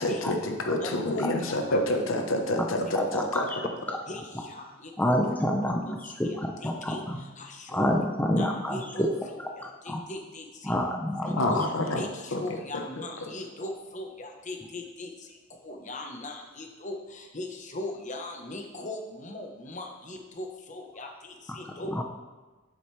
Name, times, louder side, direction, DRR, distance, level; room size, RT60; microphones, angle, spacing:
voice 1, 0.0-3.5 11.4-12.0 12.3-12.4 13.0-13.3, left 1 dB, 85° left, 4 dB, 1.0 m, -28 dB
voice 2, 0.8-1.8 4.1-5.1 6.2-8.0 8.3-9.1 9.6-10.8 11.2-22.0, left 1 dB, 40° left, 3 dB, 1.0 m, -39 dB
voice 3, 2.9-3.6 3.9-4.0 5.0-7.2 7.7-9.1 9.6-10.1 10.6-11.6 21.6-22.0, equal, 10° left, 1 dB, 0.6 m, -28 dB
9.0 x 7.7 x 3.3 m, 1.3 s
head